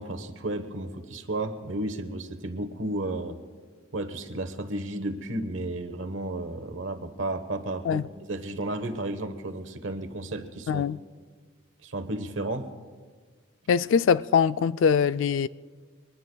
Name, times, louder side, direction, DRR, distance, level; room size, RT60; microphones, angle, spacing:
voice 1, 0.0-3.4 3.9-8.0 8.3-10.8 11.8-12.7, right 1 dB, 75° right, 1.1 m, -33 dB
voice 2, 10.7-11.0 13.7-15.5, left 6 dB, 75° left, 0.3 m, -22 dB
23.5 x 20.5 x 2.3 m
head